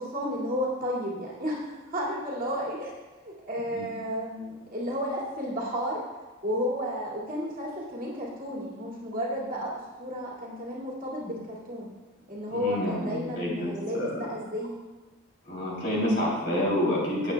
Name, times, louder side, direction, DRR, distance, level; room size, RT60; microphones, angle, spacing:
voice 1, 0.0-2.9 3.2-6.0 6.4-9.7 10.0-11.9 12.3-14.8, equal, 40° right, -5 dB, 2.4 m, -32 dB
voice 2, 12.5-14.3 15.4-17.3, left 1 dB, 50° left, -4 dB, 3.2 m, -28 dB
16.0 x 8.5 x 2.3 m, 1.2 s
head